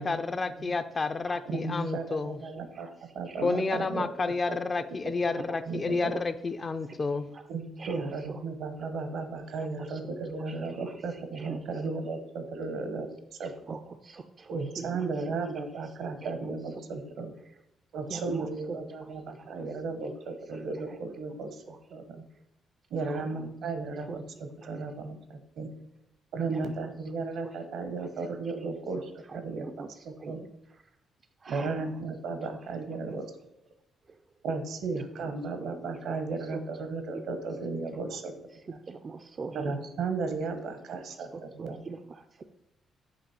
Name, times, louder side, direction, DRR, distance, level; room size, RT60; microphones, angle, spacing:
voice 1, 0.0-2.4 3.4-7.3, left 4 dB, 35° left, 10 dB, 0.4 m, -30 dB
voice 2, 1.5-4.6 5.0-5.4 5.7-6.1 7.5-13.1 13.4-13.8 14.5-17.3 17.9-22.2 22.9-25.7 26.3-29.7 30.0-30.4 31.5-33.3 34.4-38.3 39.5-41.8, right 4 dB, 75° right, 8 dB, 0.9 m, -35 dB
voice 3, 2.4-3.9 5.4-5.6 6.1-6.2 6.8-7.0 7.3-7.5 7.8-8.4 9.5-10.1 10.5-11.6 13.4-15.3 16.2-16.3 18.1-19.5 20.5-20.6 21.7-21.8 23.0-23.5 24.0-24.2 24.6-24.7 26.5-26.9 27.4-27.6 28.6-28.7 29.3-30.5 31.4-32.0 32.4-32.6 34.1-34.2 35.2-35.3 35.6-35.7 36.5-36.6 38.5-39.8 41.3-42.4, right 4 dB, 40° right, 7 dB, 0.4 m, -43 dB
7.1 x 2.9 x 5.6 m, 0.83 s
cardioid pair, 90°, 0 cm